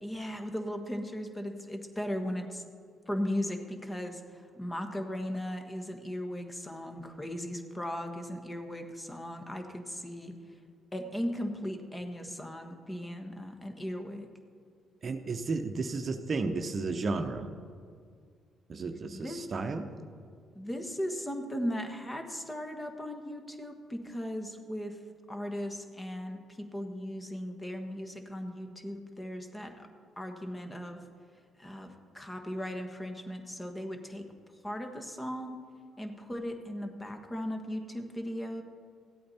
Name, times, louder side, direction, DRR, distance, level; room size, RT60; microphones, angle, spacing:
voice 1, 0.0-2.6 3.1-10.3 10.9-14.3 19.1-19.4 20.5-25.0 25.3-29.9 30.2-31.0 31.6-34.3 34.6-35.6 36.0-38.6, equal, 20° left, 5 dB, 1.4 m, -37 dB
voice 2, 15.0-17.5 18.7-19.8, right 3 dB, 45° right, 6 dB, 0.8 m, -33 dB
14.0 x 8.5 x 4.3 m, 2.1 s
hypercardioid pair, 55°, 0 cm